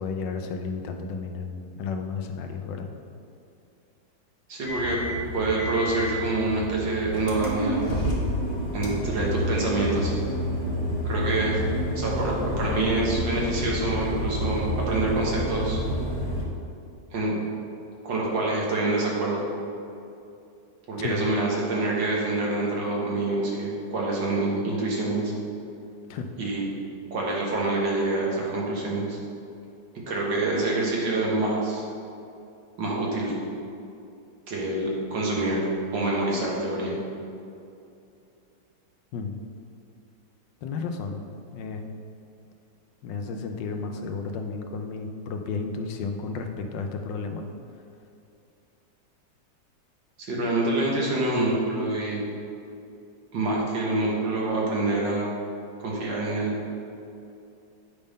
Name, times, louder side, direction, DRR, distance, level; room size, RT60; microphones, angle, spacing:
voice 1, 0.0-2.9 21.0-21.2 26.1-26.3 39.1-39.4 40.6-41.3 41.5-41.9 43.0-47.5, left 4 dB, 80° left, 5 dB, 1.3 m, -32 dB
voice 2, 4.5-5.0 5.3-7.8 8.7-10.2 11.0-11.6 12.0-15.8 17.1-17.4 18.0-19.4 20.9-25.3 26.4-26.7 27.1-29.2 30.1-31.8 32.8-33.3 34.5-35.6 35.9-37.0 50.3-52.2 53.3-55.3 55.8-56.6, right 2 dB, 80° right, -4 dB, 2.1 m, -26 dB
sound 1, 4.7-16.4, equal, 35° left, 1.0 m, -29 dB
8.8 x 3.6 x 5.3 m, 2.6 s
omnidirectional pair, 2.0 m